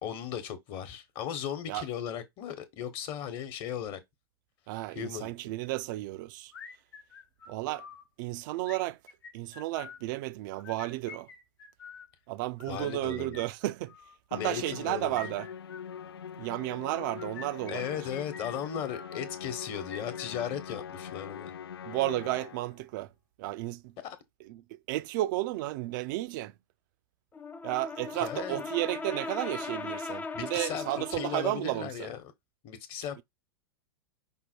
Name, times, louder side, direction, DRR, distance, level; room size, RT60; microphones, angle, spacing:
voice 1, 0.0-4.0 4.9-5.3 12.7-13.4 14.3-15.2 17.7-21.5 24.0-24.2 28.2-28.6 30.3-30.8 31.1-32.3 32.6-33.2, left 9 dB, 45° left, 1.1 m, -36 dB
voice 2, 4.7-6.5 7.5-7.8 8.2-9.0 9.3-11.3 12.3-13.9 14.3-15.5 16.4-17.9 21.9-23.1 23.4-23.9 24.4-26.5 27.6-32.1, right 17 dB, 55° right, 0.4 m, -33 dB
sound 1, 6.5-8.0 8.6-10.0 10.5-12.1 12.6-14.2 14.7-16.2 16.9-19.2 19.8-21.3, left 6 dB, 70° left, 1.0 m, -48 dB
Musical instrument, 14.3-22.8, left 7 dB, 90° left, 0.4 m, -42 dB
Brass instrument, 27.3-31.5, left 4 dB, 15° left, 0.4 m, -38 dB
5.3 x 2.1 x 4.4 m
hypercardioid pair, 105°, 13 cm